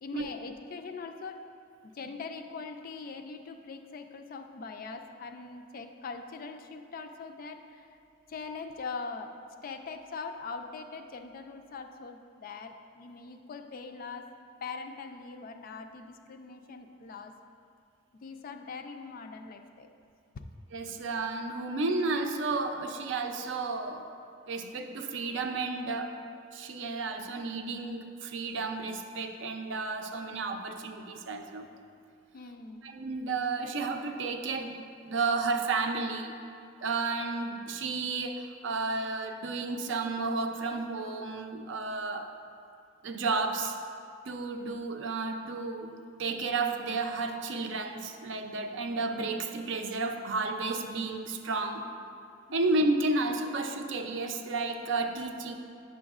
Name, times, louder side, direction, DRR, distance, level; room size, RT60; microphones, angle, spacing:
voice 1, 0.0-1.5 1.8-8.0 8.3-14.3 14.6-17.4 18.2-19.9 20.3-20.5 32.3-32.9, left 4 dB, 50° left, 6 dB, 0.4 m, -42 dB
voice 2, 20.7-24.0 24.5-26.1 26.5-31.7 32.8-34.8 35.0-36.4 36.8-42.3 43.0-43.7 44.3-51.8 52.5-55.5, right 3 dB, 65° right, 5 dB, 0.5 m, -32 dB
8.8 x 6.1 x 2.4 m, 2.4 s
head